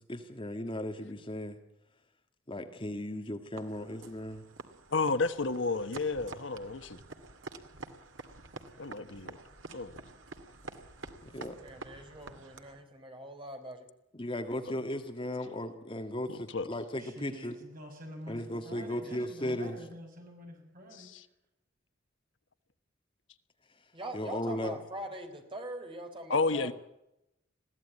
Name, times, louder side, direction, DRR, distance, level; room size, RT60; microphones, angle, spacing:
voice 1, 0.0-1.6 2.5-4.4 11.2-11.6 14.2-17.6 18.3-19.8 24.1-24.7, left 1 dB, 25° left, 6 dB, 1.7 m, -36 dB
sound 1, 3.6-12.8, right 3 dB, 70° right, 2.2 m, -48 dB
voice 2, 4.9-7.0 8.8-9.3 9.7-10.0 16.3-16.7 21.0-21.2 26.3-26.7, left 3 dB, 65° left, 11 dB, 1.2 m, -31 dB
voice 3, 11.6-13.9 23.9-26.7, right 1 dB, 25° right, 5 dB, 3.9 m, -42 dB
voice 4, 17.0-21.1, equal, 45° right, 2 dB, 6.9 m, -47 dB
22.5 x 16.0 x 8.6 m, 0.87 s
head